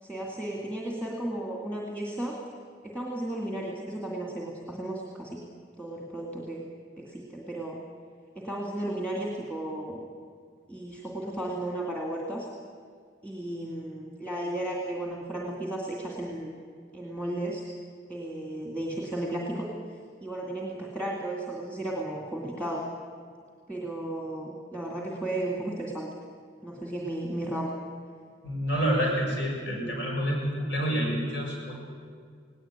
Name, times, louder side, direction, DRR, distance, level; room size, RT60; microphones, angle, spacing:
voice 1, 0.0-2.4 2.8-5.4 5.8-6.6 7.0-7.8 8.4-10.0 10.7-12.5 13.2-16.6 16.9-17.6 18.1-19.7 20.2-22.9 23.7-26.1 26.6-27.7, right 1 dB, 5° left, -2 dB, 2.3 m, -34 dB
voice 2, 28.4-31.7, equal, 65° left, -1 dB, 7.2 m, -28 dB
19.0 x 18.0 x 8.9 m, 2.1 s
head